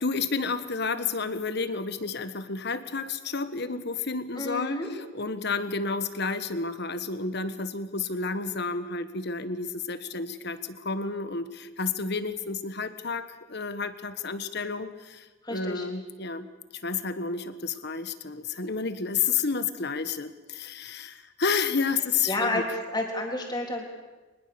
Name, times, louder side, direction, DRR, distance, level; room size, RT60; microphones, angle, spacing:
voice 1, 0.0-4.8 5.1-16.5 16.8-22.6, left 4 dB, 50° left, 11 dB, 1.3 m, -30 dB
voice 2, 4.3-4.9 15.4-15.9 22.3-23.8, left 2 dB, 20° left, 1 dB, 3.7 m, -30 dB
23.5 x 20.5 x 7.0 m, 1.2 s
head